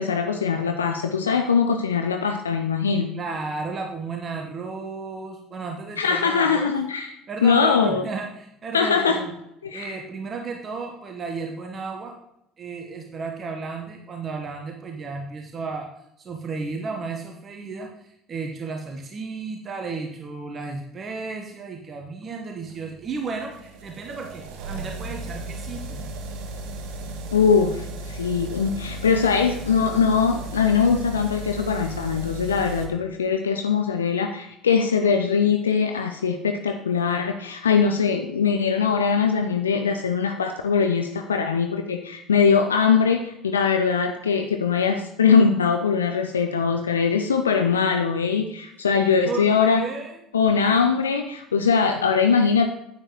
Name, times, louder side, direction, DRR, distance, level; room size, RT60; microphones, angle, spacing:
voice 1, 0.0-3.1 6.0-7.1 7.4-8.0 8.7-9.3 9.6-10.0 27.3-49.8 50.3-52.7, left 6 dB, 75° left, 6 dB, 0.5 m, -21 dB
voice 2, 3.1-6.7 7.3-9.3 9.7-12.1 12.6-15.9 16.2-26.0 49.1-50.2, right 4 dB, 35° right, 3 dB, 1.1 m, -33 dB
sound 1, 22.5-32.9, right 2 dB, 60° right, 1.3 m, -35 dB
10.0 x 8.9 x 3.0 m, 0.82 s
figure-of-eight pair, 60°, 0 cm